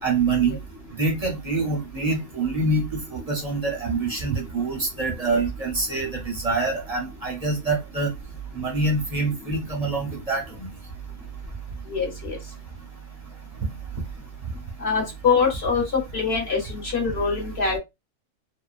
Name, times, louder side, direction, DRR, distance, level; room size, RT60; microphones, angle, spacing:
voice 1, 0.0-0.6 1.0-8.1 8.5-10.7, right 3 dB, 35° right, 0.6 m, -25 dB
voice 2, 11.9-12.4 14.8-15.8 16.1-17.8, left 5 dB, 50° left, 1.2 m, -24 dB
2.7 x 2.2 x 2.4 m
omnidirectional pair, 1.5 m